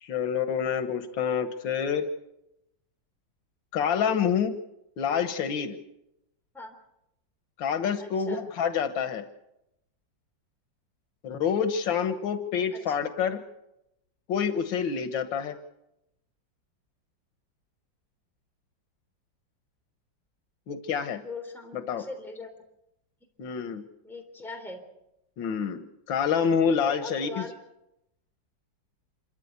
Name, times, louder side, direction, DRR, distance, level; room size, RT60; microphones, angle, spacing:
voice 1, 0.0-2.1 3.7-4.6 5.0-5.8 7.6-9.2 11.2-13.4 14.3-15.6 20.7-21.2 21.7-22.1 23.4-23.8 25.4-27.5, left 7 dB, 90° left, 8 dB, 1.9 m, -27 dB
voice 2, 8.0-8.4 12.7-12.9 21.2-22.5 24.0-24.8 26.6-27.5, left 3 dB, ahead, 3 dB, 3.4 m, -40 dB
27.0 x 14.0 x 8.2 m, 0.86 s
omnidirectional pair, 2.0 m